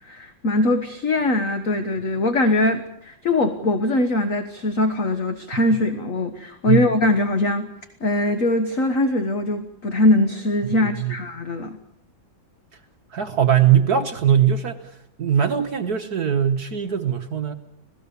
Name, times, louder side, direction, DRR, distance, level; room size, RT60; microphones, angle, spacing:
voice 1, 0.0-7.7 8.0-11.8, left 2 dB, 45° left, 8 dB, 1.6 m, -21 dB
voice 2, 10.7-11.1 13.1-14.8 15.2-17.6, right 9 dB, 55° right, 6 dB, 1.5 m, -20 dB
26.5 x 18.5 x 7.0 m, 0.73 s
omnidirectional pair, 2.1 m